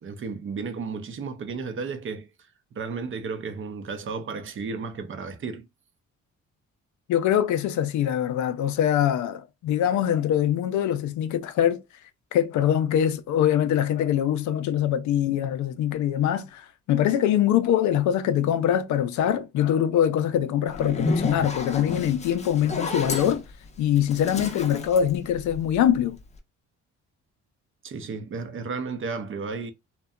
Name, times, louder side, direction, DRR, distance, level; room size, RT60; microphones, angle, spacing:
voice 1, 0.0-2.3 2.7-5.7 27.8-29.7, right 4 dB, 45° right, 0.5 m, -33 dB
voice 2, 7.1-11.8 12.3-23.4 23.8-26.2, left 10 dB, 75° left, 0.5 m, -23 dB
Zipper (clothing), 20.7-25.9, left 3 dB, 25° left, 0.5 m, -31 dB
2.7 x 2.2 x 2.3 m
cardioid pair, 90°, 30 cm